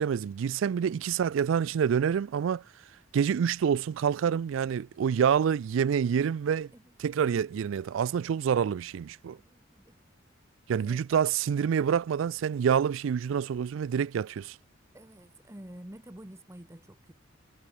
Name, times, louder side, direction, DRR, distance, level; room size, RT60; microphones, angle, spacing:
voice 1, 0.0-2.6 3.1-6.7 7.0-9.4 10.7-14.6, right 7 dB, 70° right, 0.3 m, -27 dB
voice 2, 9.3-10.0 10.7-11.0 14.9-17.1, right 1 dB, 15° right, 1.2 m, -49 dB
head